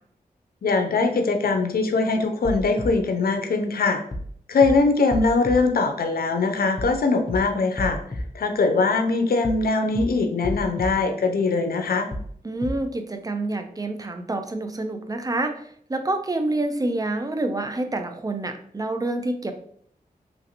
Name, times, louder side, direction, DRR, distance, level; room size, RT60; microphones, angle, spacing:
voice 1, 0.6-4.0 4.5-12.1, left 3 dB, 75° left, 5 dB, 0.5 m, -22 dB
sound 1, 2.4-2.9 4.1-4.3 4.6-4.7 5.1-5.5 6.8-7.0 7.3-7.4 7.8-8.2 9.4-9.7 9.9-10.0 10.4-10.9 12.1-12.3 12.6-12.7, left 1 dB, 30° left, 0.6 m, -30 dB
voice 2, 12.4-15.5 15.9-19.5, right 2 dB, 25° right, 6 dB, 0.5 m, -27 dB
3.1 x 2.5 x 2.8 m, 0.63 s
cardioid pair, 50°, 16 cm